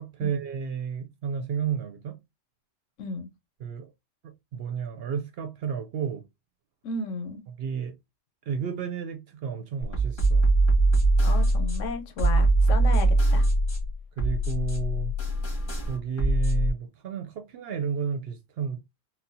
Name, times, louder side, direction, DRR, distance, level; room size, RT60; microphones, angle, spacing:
voice 1, 0.0-2.2 3.6-3.9 4.2-6.2 7.6-7.9 8.5-10.5 14.2-15.1 15.9-18.8, right 7 dB, 65° right, 0.7 m, -32 dB
voice 2, 3.0-3.3 6.8-7.4 11.2-13.5, left 3 dB, 80° left, 1.0 m, -34 dB
sound 1, 9.8-16.7, right 2 dB, 45° left, 1.8 m, -22 dB
4.2 x 2.1 x 2.6 m
omnidirectional pair, 1.3 m